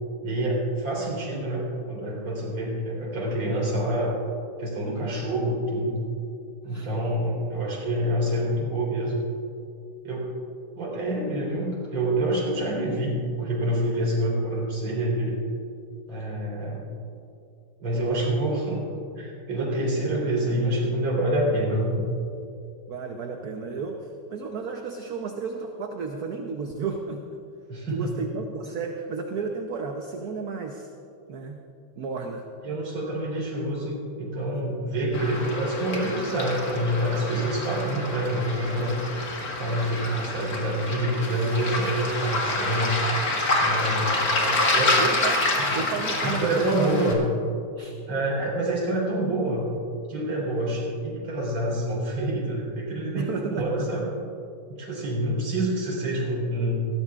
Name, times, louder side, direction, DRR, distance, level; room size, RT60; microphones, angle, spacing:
voice 1, 0.2-4.2 4.6-6.0 6.6-9.1 10.0-10.3 10.7-15.4 16.1-16.8 17.8-18.8 19.2-22.1 27.7-28.1 32.6-39.0 39.6-42.9 43.6-44.4 44.7-45.0 45.6-45.7 46.2-47.2 48.1-49.7 50.1-54.1 54.7-56.8, right 1 dB, 75° right, -4 dB, 4.5 m, -27 dB
voice 2, 22.9-27.2 27.9-30.9 31.3-31.6 32.0-32.4 44.4-44.7 45.0-45.4 45.7-47.2 47.8-48.0 53.1-53.9, right 5 dB, 60° right, 3 dB, 1.1 m, -33 dB
Waves surf, 35.1-47.1, left 2 dB, 45° left, 2.2 m, -27 dB
20.5 x 16.5 x 2.4 m, 2.6 s
omnidirectional pair, 2.3 m